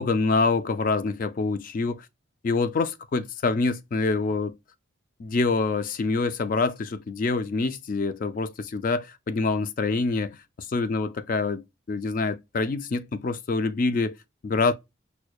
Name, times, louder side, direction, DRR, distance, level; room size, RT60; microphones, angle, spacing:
voice 1, 0.0-2.1 2.4-4.5 5.2-10.4 10.7-14.1 14.4-14.7, left 3 dB, 40° left, 0.3 m, -26 dB
6.2 x 2.2 x 2.2 m
head